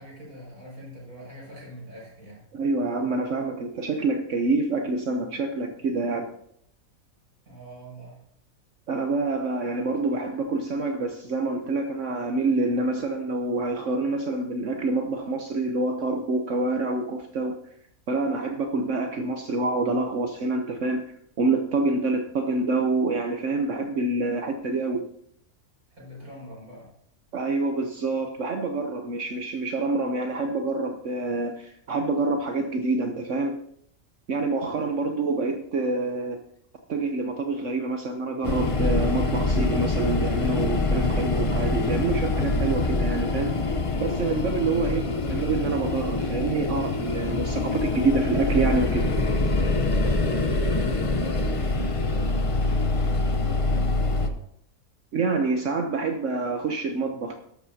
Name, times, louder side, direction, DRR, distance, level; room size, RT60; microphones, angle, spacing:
voice 1, 0.0-2.4 7.4-8.2 25.9-26.9 50.4-54.4, equal, 90° right, -4 dB, 6.5 m, -43 dB
voice 2, 2.5-6.3 8.9-17.5 18.1-21.0 21.4-25.1 27.3-33.6 34.3-36.4 36.9-43.5 44.0-49.1 55.1-57.3, right 3 dB, 60° right, 4 dB, 1.2 m, -27 dB
sound 1, 38.4-54.3, left 2 dB, 30° left, 0.6 m, -25 dB
13.5 x 12.0 x 2.8 m, 0.70 s
omnidirectional pair, 1.5 m